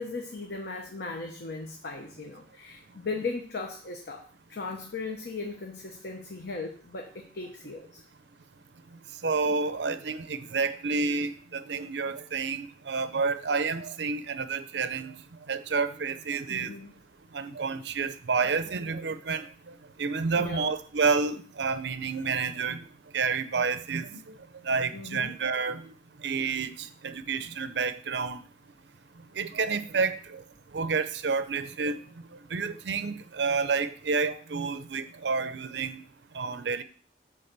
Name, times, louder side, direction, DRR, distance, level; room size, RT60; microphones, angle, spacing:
voice 1, 0.0-8.0 16.5-17.0 20.4-20.7 24.9-25.4, left 3 dB, 65° left, 2 dB, 0.9 m, -37 dB
voice 2, 9.2-15.1 15.5-16.7 17.3-19.5 20.0-22.8 23.1-24.1 24.6-25.8 26.2-28.4 29.4-30.4 30.7-32.0 32.5-36.0 36.3-36.8, right 4 dB, 75° right, 12 dB, 0.6 m, -29 dB
8.7 x 3.3 x 6.7 m, 0.43 s
head